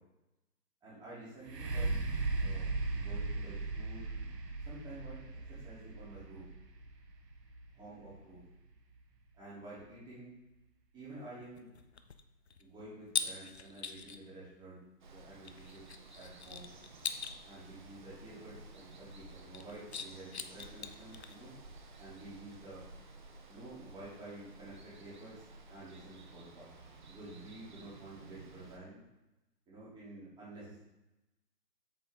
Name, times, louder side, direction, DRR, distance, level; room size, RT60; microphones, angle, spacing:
voice 1, 0.8-4.3 4.6-6.4 7.7-8.4 9.3-10.3 10.9-11.7 12.6-14.8 15.1-15.8 16.1-16.7 17.4-21.5 22.0-22.8 23.5-26.7 27.0-29.0 29.7-30.8, right 2 dB, 10° right, -9 dB, 3.0 m, -50 dB
sound 1, 1.4-9.2 9.8-9.9, right 3 dB, 70° right, 1.5 m, -38 dB
sound 2, 11.4-14.3 15.4-17.4 19.4-21.6, left 5 dB, 40° left, 0.5 m, -41 dB
Water, 15.0-28.8, right 2 dB, 30° right, 0.8 m, -54 dB
8.0 x 7.7 x 3.7 m, 0.98 s
hypercardioid pair, 155°, 50 cm